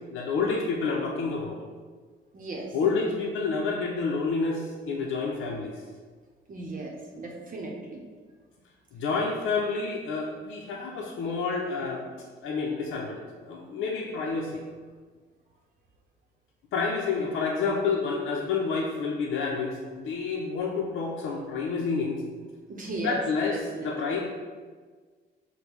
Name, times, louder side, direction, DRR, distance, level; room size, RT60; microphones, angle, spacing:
voice 1, 0.1-1.6 2.7-5.8 8.9-12.1 12.4-14.6 16.7-22.2 23.0-24.2, left 4 dB, 80° left, -2 dB, 0.6 m, -29 dB
voice 2, 2.3-2.7 6.5-8.0 22.7-23.2 23.5-23.9, right 2 dB, 45° right, -1 dB, 0.8 m, -36 dB
5.1 x 2.2 x 4.6 m, 1.5 s
cardioid pair, 90°, 20 cm